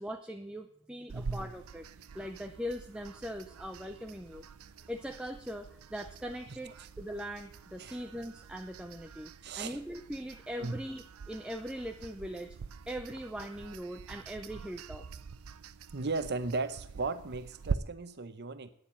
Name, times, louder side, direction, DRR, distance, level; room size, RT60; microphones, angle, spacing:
voice 1, 0.0-1.9 2.1-4.4 4.9-12.6 12.9-15.1, equal, 5° right, 4 dB, 0.5 m, -41 dB
voice 2, 1.1-1.5 7.8-8.0 9.4-9.8 10.6-10.8 15.9-18.7, right 3 dB, 50° right, 11 dB, 0.8 m, -36 dB
sound 1, 1.1-17.8, right 5 dB, 80° right, 0.5 m, -45 dB
9.4 x 7.1 x 8.6 m, 0.65 s
head